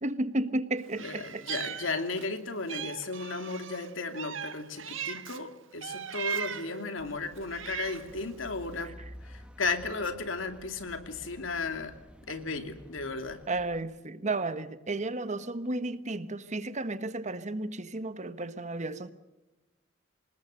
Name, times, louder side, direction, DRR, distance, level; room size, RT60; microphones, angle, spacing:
voice 1, 0.0-1.4 13.5-19.1, right 2 dB, 40° right, 1.2 m, -33 dB
Meow, 0.9-2.3 2.7-5.4 5.8-6.8 7.4-8.2, right 8 dB, 75° right, 1.3 m, -38 dB
voice 2, 1.0-8.9 9.2-11.9 12.3-13.4, left 3 dB, 85° left, 2.7 m, -35 dB
sound 1, 7.0-13.8, equal, 5° right, 1.5 m, -51 dB
26.5 x 20.0 x 6.6 m
head